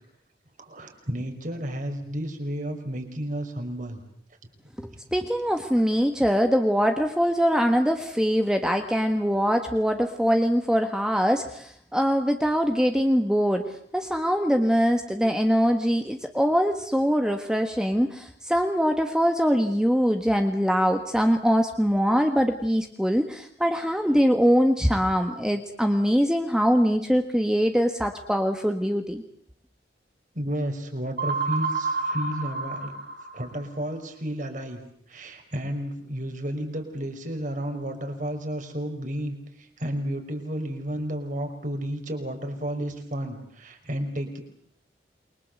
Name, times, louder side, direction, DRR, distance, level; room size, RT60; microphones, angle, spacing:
voice 1, 0.6-4.0 30.3-33.0 33.3-34.8 35.1-44.4, equal, 45° right, 5 dB, 5.5 m, -32 dB
voice 2, 4.8-29.2, equal, 5° right, 5 dB, 1.5 m, -23 dB
sound 1, 31.2-33.8, right 4 dB, 65° right, 7.0 m, -29 dB
28.5 x 23.5 x 8.0 m, 0.66 s
head